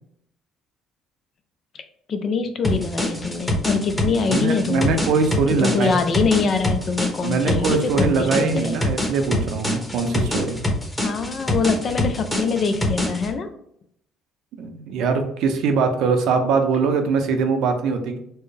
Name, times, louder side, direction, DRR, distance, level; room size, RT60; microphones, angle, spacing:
voice 1, 2.1-5.0 5.6-8.8 11.0-13.5, left 4 dB, 50° left, 8 dB, 0.5 m, -24 dB
sound 1, 2.6-13.3, left 1 dB, 10° left, 1.1 m, -25 dB
voice 2, 4.3-6.0 7.2-10.6 14.6-18.2, right 4 dB, 75° right, 6 dB, 0.6 m, -22 dB
4.4 x 2.2 x 3.3 m, 0.73 s
supercardioid pair, 85°, 0 cm